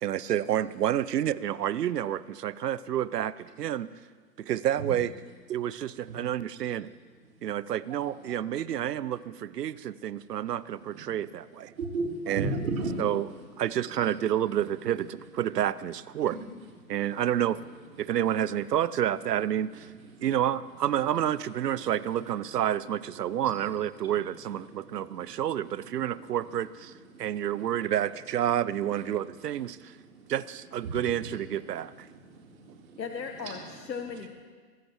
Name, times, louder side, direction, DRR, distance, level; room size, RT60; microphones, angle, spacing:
voice 1, 0.0-3.9 4.4-6.9 7.4-11.7 12.3-12.6 13.0-13.3 13.6-16.4 16.9-17.6 18.0-19.9 20.2-26.9 27.2-29.9 30.3-32.1, right 11 dB, 70° right, 18 dB, 0.7 m, -29 dB
voice 2, 7.9-8.4 10.9-11.0 11.8-13.1 20.2-20.3 21.8-21.9 24.0-24.1 24.9-25.3 27.1-27.2 30.1-30.3 30.8-30.9 31.2-31.4 32.2-33.0 33.5-33.6, right 3 dB, 55° right, -2 dB, 3.6 m, -35 dB
voice 3, 33.0-34.3, left 6 dB, 90° left, 5 dB, 1.2 m, -37 dB
23.0 x 13.5 x 3.1 m, 1.5 s
hypercardioid pair, 145°, 50 cm